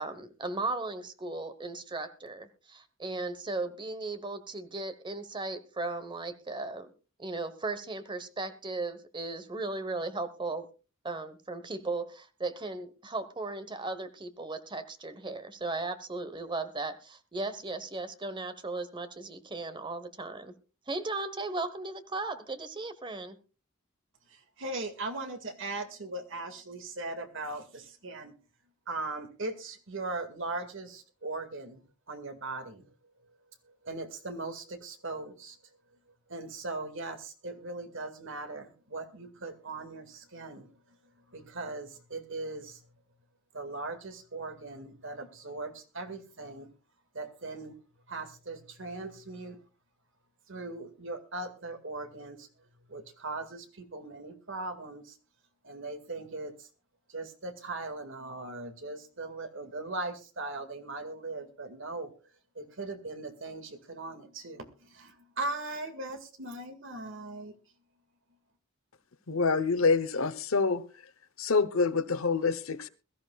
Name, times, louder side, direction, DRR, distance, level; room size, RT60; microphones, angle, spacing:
voice 1, 0.0-6.9 7.2-10.7 11.0-20.5 20.9-23.4, right 3 dB, 25° right, 1.1 m, -36 dB
voice 2, 24.3-28.3 28.9-32.9 33.8-35.6 36.3-40.7 41.3-42.8 43.5-46.7 47.1-47.8 48.1-49.6 50.5-52.5 52.9-55.2 55.6-56.7 57.1-62.1 62.6-67.5, right 2 dB, 65° right, 2.0 m, -39 dB
voice 3, 69.3-70.8 71.4-72.9, left 4 dB, 80° left, 1.0 m, -26 dB
22.0 x 13.5 x 2.4 m
head